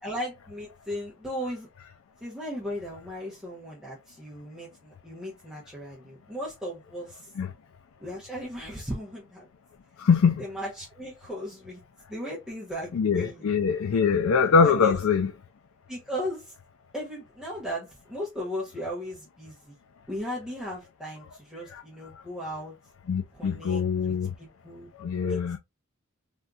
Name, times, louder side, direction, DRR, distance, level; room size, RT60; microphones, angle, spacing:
voice 1, 0.0-1.7 2.2-7.3 8.0-9.5 10.4-11.8 12.1-13.5 14.6-15.0 15.9-16.5 16.9-19.8 20.1-22.7 23.3-24.9 25.2-25.6, equal, 5° right, 0.8 m, -37 dB
voice 2, 10.0-10.4 12.9-15.3 21.7-21.8 23.1-24.3 25.0-25.6, left 5 dB, 75° left, 0.4 m, -23 dB
3.5 x 2.6 x 2.4 m
head